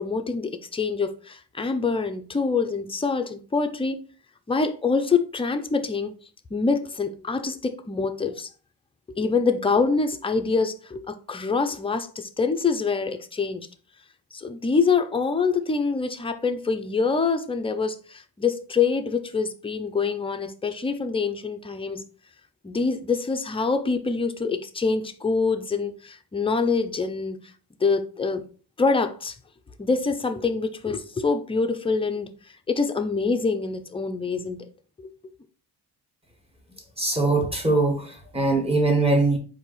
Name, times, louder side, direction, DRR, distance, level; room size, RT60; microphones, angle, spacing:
voice 1, 0.0-4.0 4.5-6.2 6.5-8.5 9.1-13.7 14.3-22.0 22.6-27.4 27.8-28.4 28.8-29.3 29.8-32.3 32.7-34.7 35.0-35.1, left 4 dB, 15° left, 0.4 m, -25 dB
voice 2, 37.0-39.4, right 3 dB, 15° right, 1.4 m, -22 dB
4.4 x 2.8 x 4.0 m
cardioid pair, 105°, 40 cm